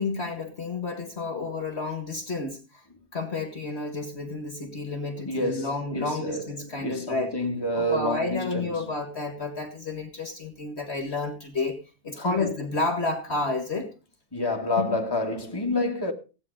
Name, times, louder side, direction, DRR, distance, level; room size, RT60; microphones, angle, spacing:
voice 1, 0.0-2.6 3.1-7.3 7.7-11.8 12.0-13.9 14.8-14.9, left 3 dB, 45° left, 2.0 m, -30 dB
voice 2, 5.1-8.9 12.1-12.7 14.3-16.1, left 1 dB, 15° left, 2.3 m, -29 dB
16.5 x 9.0 x 5.1 m
omnidirectional pair, 1.6 m